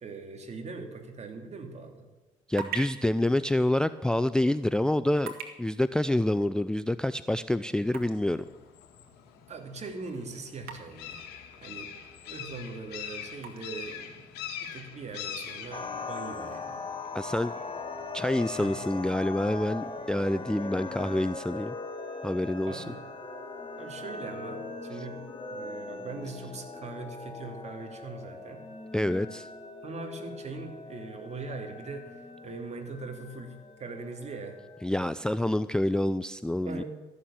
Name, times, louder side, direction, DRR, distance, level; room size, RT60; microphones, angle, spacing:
voice 1, 0.0-2.0 9.5-11.3 11.6-11.9 12.2-14.3 14.6-16.8 18.6-18.7 22.7-23.0 23.8-25.2 25.5-28.6 29.8-34.6 36.6-36.8, right 3 dB, 45° right, 4 dB, 2.8 m, -41 dB
sound 1, 2.1-15.9, right 7 dB, 70° right, 2.3 m, -48 dB
voice 2, 2.5-5.3 5.6-8.4 17.1-17.5 18.1-21.7 22.2-22.8 28.9-29.5 34.8-36.8, left 1 dB, 5° left, 14 dB, 0.4 m, -27 dB
sound 2, 7.9-21.6, left 8 dB, 80° left, 1.9 m, -45 dB
sound 3, 15.7-34.8, left 3 dB, 35° left, 2.1 m, -40 dB
14.0 x 7.4 x 8.8 m, 1.1 s
supercardioid pair, 65°, 16 cm